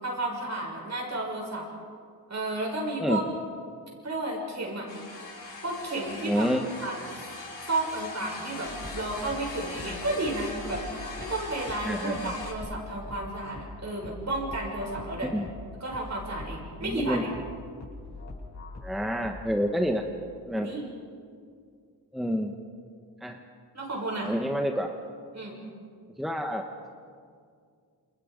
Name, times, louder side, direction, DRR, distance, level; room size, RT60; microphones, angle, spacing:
voice 1, 0.0-1.7 2.3-3.2 4.0-4.9 5.6-7.3 7.6-15.3 15.8-17.3 20.6-20.8 23.7-24.3 25.3-25.6, right 2 dB, 40° right, -1 dB, 6.8 m, -32 dB
sound 1, 4.9-12.5, left 2 dB, 65° left, 5.8 m, -41 dB
voice 2, 6.2-6.6 11.8-12.3 15.3-15.5 16.8-17.2 18.8-20.0 20.5-20.7 22.1-22.5 23.2-23.4 24.2-24.9 26.1-26.6, equal, ahead, 3 dB, 1.1 m, -28 dB
sound 2, 8.6-19.7, left 2 dB, 40° left, 7.7 m, -43 dB
29.0 x 29.0 x 5.2 m, 2.2 s
wide cardioid pair, 165°, 41 cm